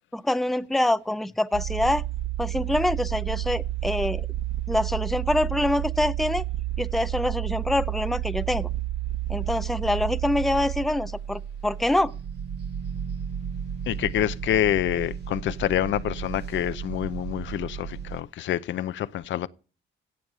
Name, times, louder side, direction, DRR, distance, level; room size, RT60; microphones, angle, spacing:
voice 1, 0.1-2.0 2.4-4.3 4.7-6.4 6.8-8.7 9.3-12.1, left 1 dB, ahead, 0.5 m, -25 dB
sound 1, 1.5-18.2, right 11 dB, 55° right, 0.8 m, -31 dB
voice 2, 13.9-19.5, left 12 dB, 70° left, 0.6 m, -27 dB
16.5 x 6.4 x 5.5 m
cardioid pair, 90°, 20 cm